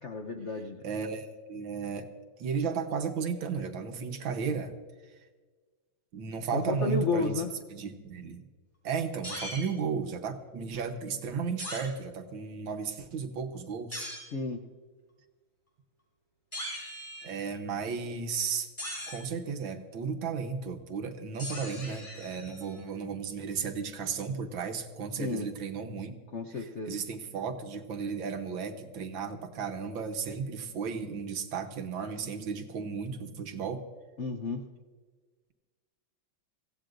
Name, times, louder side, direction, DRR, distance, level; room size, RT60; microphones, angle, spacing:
voice 1, 0.0-0.8 6.5-7.5 14.3-14.6 25.2-25.5 26.3-27.0 34.2-34.6, left 4 dB, 65° left, 4 dB, 0.7 m, -32 dB
voice 2, 0.8-2.1 2.4-4.7 6.1-7.3 7.7-8.5 8.8-14.1 17.2-18.7 19.1-26.1 26.5-33.8, right 5 dB, 70° right, 6 dB, 1.8 m, -34 dB
sound 1, 9.2-9.7 11.6-11.8 13.9-14.3 16.5-17.5 18.8-19.3 21.4-22.8, equal, 15° left, 5.4 m, -39 dB
24.5 x 16.0 x 2.6 m, 1.4 s
omnidirectional pair, 2.2 m